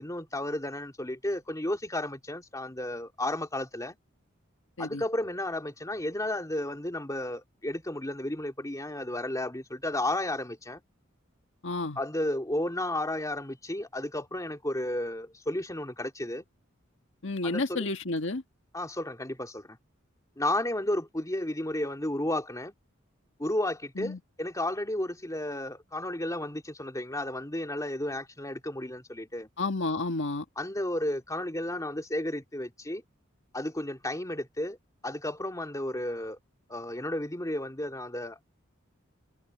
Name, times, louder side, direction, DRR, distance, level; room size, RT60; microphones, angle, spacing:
voice 1, 0.0-3.9 4.8-10.8 12.0-16.4 17.4-17.9 18.7-19.8 20.4-22.7 23.4-29.5 30.6-33.0 33.5-34.8 35.0-36.4 36.7-38.4, left 1 dB, 15° left, 2.8 m, -33 dB
voice 2, 11.6-12.0 17.2-18.4 24.0-24.2 29.6-30.4, left 2 dB, 65° left, 1.7 m, -31 dB
head